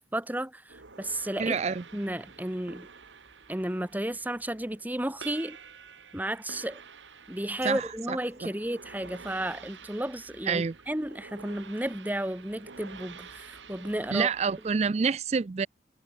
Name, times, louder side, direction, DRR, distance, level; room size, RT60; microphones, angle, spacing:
voice 1, 0.1-1.6 1.9-2.9 3.5-5.6 6.1-6.8 7.3-14.3, right 1 dB, 10° right, 1.3 m, -33 dB
sound 1, 0.7-14.9, right 5 dB, 85° right, 1.8 m, -49 dB
voice 2, 1.4-1.8 7.6-8.5 10.5-10.8 14.1-15.7, right 5 dB, 35° right, 0.4 m, -28 dB
head